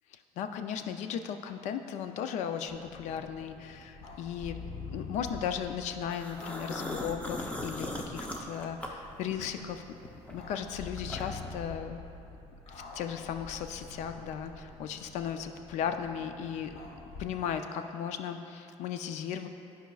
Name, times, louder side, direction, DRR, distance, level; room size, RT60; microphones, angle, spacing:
voice 1, 0.1-4.6 4.9-9.8 10.3-12.0 12.7-16.8 17.2-19.5, left 8 dB, 85° left, 8 dB, 0.4 m, -36 dB
sound 1, 2.7-17.3, left 3 dB, 55° left, 0.8 m, -46 dB
sound 2, 6.1-9.7 10.0-11.5, left 1 dB, 10° left, 0.6 m, -39 dB
12.5 x 5.1 x 2.3 m, 2.7 s
cardioid pair, 140°, 12 cm